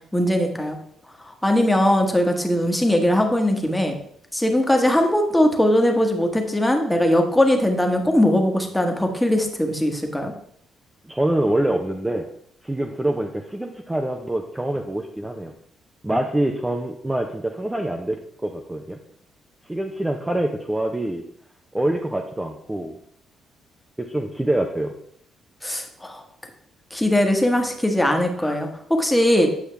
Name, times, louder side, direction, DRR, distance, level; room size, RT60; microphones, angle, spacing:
voice 1, 0.1-0.8 1.4-3.9 4.3-10.3 25.6-26.2 26.9-29.5, left 1 dB, 5° left, 4 dB, 1.2 m, -20 dB
voice 2, 11.1-12.3 12.6-15.5 16.0-19.0 19.7-21.2 21.7-23.0 24.0-24.9 28.4-28.6, right 1 dB, 10° right, 2 dB, 0.6 m, -25 dB
8.5 x 5.6 x 3.4 m, 0.69 s
cardioid pair, 90°, 0 cm